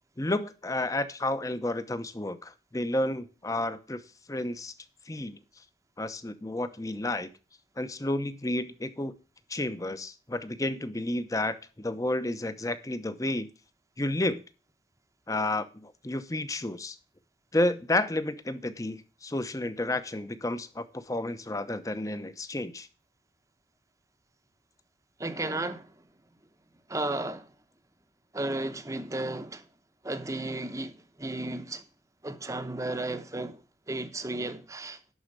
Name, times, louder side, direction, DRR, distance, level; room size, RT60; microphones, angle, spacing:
voice 1, 0.2-4.0 4.3-4.7 5.1-5.4 6.0-7.3 7.8-9.1 9.5-13.5 14.0-14.4 15.3-17.0 17.5-22.9, left 1 dB, 20° left, 0.8 m, -31 dB
voice 2, 25.2-26.1 26.9-27.5 28.3-29.7 30.0-31.8 32.2-35.0, right 2 dB, 20° right, 0.8 m, -34 dB
11.5 x 4.4 x 6.5 m
head